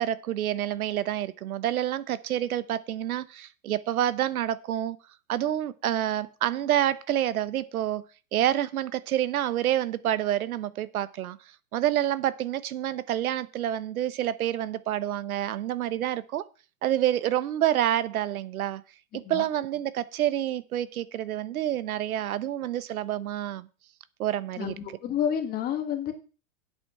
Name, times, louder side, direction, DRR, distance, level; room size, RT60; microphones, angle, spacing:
voice 1, 0.0-5.0 5.3-8.0 8.3-11.4 11.7-16.5 16.8-18.8 19.1-23.7 24.2-24.7, right 12 dB, 90° right, 1.1 m, -28 dB
voice 2, 25.0-26.1, left 9 dB, 20° left, 1.7 m, -29 dB
8.3 x 8.2 x 5.8 m
supercardioid pair, 160°, 42 cm